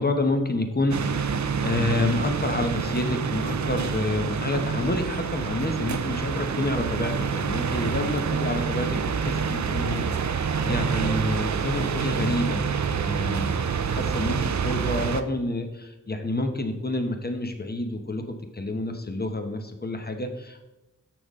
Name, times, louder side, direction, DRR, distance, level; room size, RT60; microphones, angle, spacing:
voice 1, 0.0-15.7 16.1-18.2 18.5-20.7, left 2 dB, 30° left, 5 dB, 0.9 m, -28 dB
sound 1, 0.9-15.2, right 6 dB, 60° right, 0.5 m, -27 dB
6.6 x 6.1 x 3.6 m, 1.0 s
wide cardioid pair, 55°, 33 cm